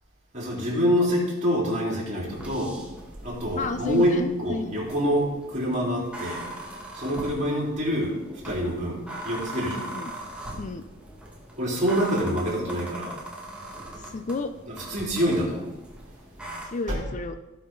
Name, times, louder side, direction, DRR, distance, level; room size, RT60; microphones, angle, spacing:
voice 1, 0.3-2.8 3.2-4.1 4.4-6.4 6.9-8.1 8.4-9.8 11.6-13.2 14.7-15.7 16.9-17.0, equal, 35° right, -4 dB, 4.1 m, -26 dB
sound 1, 2.2-16.7, right 1 dB, 5° right, 1.6 m, -40 dB
voice 2, 3.5-4.8 9.7-10.1 10.6-10.8 14.0-14.5 16.6-17.3, left 3 dB, 35° left, 9 dB, 0.4 m, -32 dB
17.0 x 5.8 x 3.9 m, 1.0 s
head